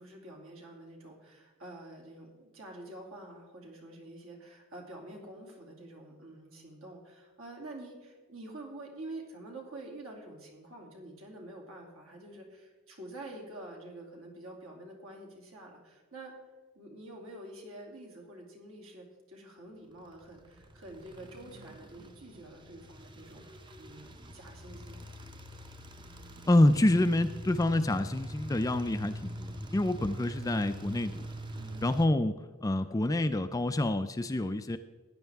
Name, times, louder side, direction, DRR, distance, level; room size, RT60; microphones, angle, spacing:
voice 1, 0.0-16.4 16.7-23.5 23.8-25.0 31.5-31.9, right 1 dB, 65° right, 0 dB, 2.7 m, -47 dB
sound 1, 20.1-32.1, right 1 dB, 20° right, 0.7 m, -44 dB
voice 2, 26.5-31.3 31.8-34.8, left 1 dB, 15° left, 10 dB, 0.3 m, -27 dB
16.0 x 10.0 x 3.5 m, 1.3 s
head